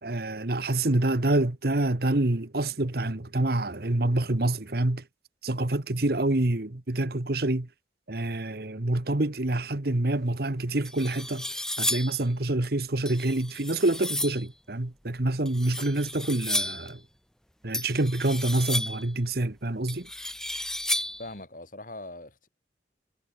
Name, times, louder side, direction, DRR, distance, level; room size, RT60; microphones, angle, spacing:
voice 1, 0.0-5.0 5.4-7.7 8.1-11.5 11.8-17.0 17.6-20.1, right 2 dB, 60° right, 1.4 m, -27 dB
sound 1, 10.3-10.4 10.8-12.2 13.1-14.5 15.5-16.9 17.7-19.1 19.9-21.3, left 1 dB, 5° left, 0.5 m, -32 dB
voice 2, 21.2-22.5, left 2 dB, 50° left, 5.1 m, -41 dB
head